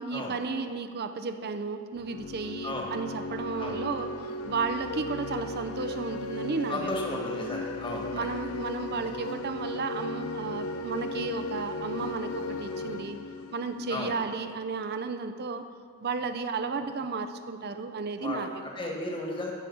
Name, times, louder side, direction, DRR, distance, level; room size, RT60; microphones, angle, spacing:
voice 1, 0.0-4.2 4.4-7.2 8.1-13.2 13.5-15.7 16.0-19.0, right 4 dB, 50° right, 9 dB, 0.6 m, -33 dB
sound 1, 2.0-14.6, left 2 dB, 90° left, 0.7 m, -36 dB
voice 2, 6.7-8.1 13.9-14.1 18.2-18.4 18.8-19.5, left 2 dB, 25° left, -1 dB, 1.8 m, -34 dB
13.5 x 5.2 x 8.4 m, 2.1 s
head